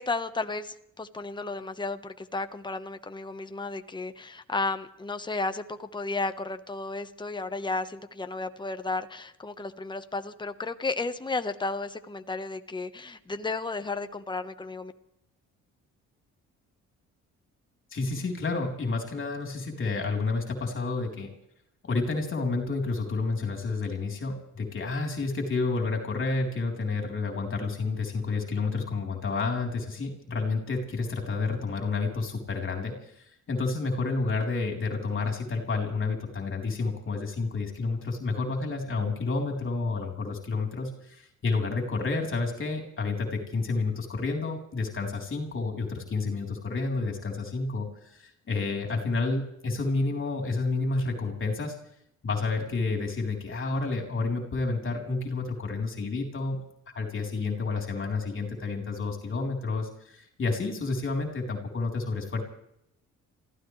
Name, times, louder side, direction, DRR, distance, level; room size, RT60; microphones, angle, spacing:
voice 1, 0.0-14.9, left 3 dB, 15° left, 8 dB, 1.2 m, -33 dB
voice 2, 17.9-21.3 21.8-51.7 52.2-56.6 56.9-62.4, left 3 dB, 40° left, 2 dB, 3.9 m, -30 dB
28.5 x 15.5 x 3.3 m, 0.75 s
cardioid pair, 90°, 30 cm